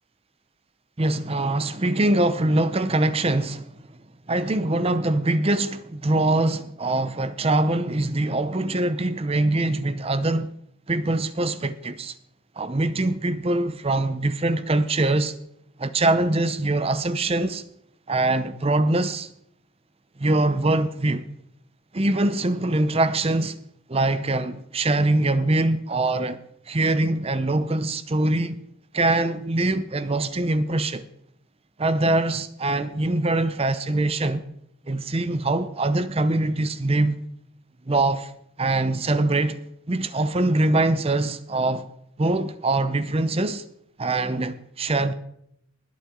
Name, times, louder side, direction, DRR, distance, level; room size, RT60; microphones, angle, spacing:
voice 1, 1.0-3.8 4.3-10.5 10.9-12.2 12.6-15.4 15.8-17.6 18.1-19.3 20.2-21.2 21.9-23.6 23.9-26.4 26.7-28.6 28.9-31.1 31.8-34.4 34.9-37.2 37.9-38.3 38.6-39.6 39.9-41.9 42.2-43.6 44.0-45.1, right 2 dB, 30° right, 0.6 m, -23 dB
20.5 x 8.6 x 3.8 m
head